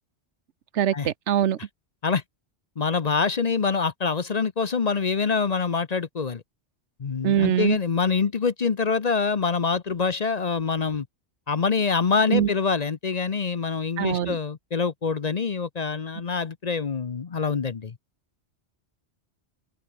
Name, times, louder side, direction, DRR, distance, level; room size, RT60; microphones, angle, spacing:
voice 1, 0.7-1.6 7.2-7.8 12.3-12.5 14.0-14.4, right 10 dB, 90° right, 1.1 m, -23 dB
voice 2, 2.8-6.4 7.0-11.1 11.5-17.9, left 5 dB, 40° left, 0.8 m, -25 dB
omnidirectional pair, 1.1 m